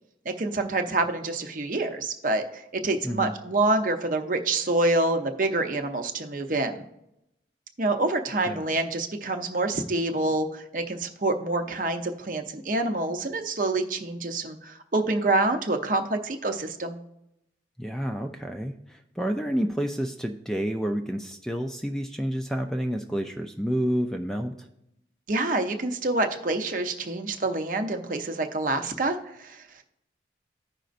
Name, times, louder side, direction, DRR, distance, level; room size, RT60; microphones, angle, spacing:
voice 1, 0.3-6.8 7.8-17.0 25.3-29.8, right 2 dB, 45° right, 6 dB, 0.7 m, -27 dB
voice 2, 17.8-24.7, equal, 5° left, 4 dB, 0.4 m, -29 dB
14.5 x 5.1 x 2.5 m, 0.82 s
head